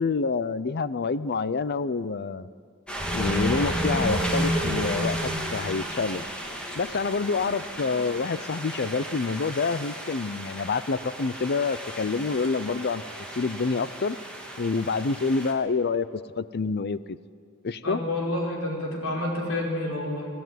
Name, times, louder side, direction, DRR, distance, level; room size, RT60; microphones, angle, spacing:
voice 1, 0.0-2.5 3.1-6.2 6.8-13.0 13.4-14.2 14.6-16.1 16.4-17.2 17.6-18.0, left 4 dB, 50° left, 16 dB, 0.5 m, -27 dB
sound 1, 2.9-15.5, equal, 5° left, 2.8 m, -32 dB
voice 2, 17.8-20.3, left 1 dB, 70° left, -1 dB, 5.5 m, -29 dB
24.5 x 15.5 x 9.3 m, 2.2 s
head